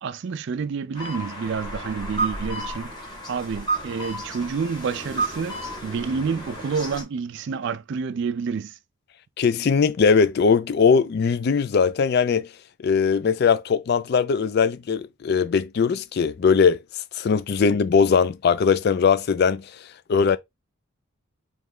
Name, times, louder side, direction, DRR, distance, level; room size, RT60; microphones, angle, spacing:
voice 1, 0.0-3.0 3.3-8.8, right 5 dB, 55° right, 0.3 m, -29 dB
sound 1, 0.9-7.0, right 2 dB, 20° left, 1.5 m, -32 dB
voice 2, 9.4-12.5 12.8-16.8 17.1-19.7 20.1-20.4, left 5 dB, 45° left, 0.3 m, -20 dB
3.3 x 3.1 x 3.6 m
head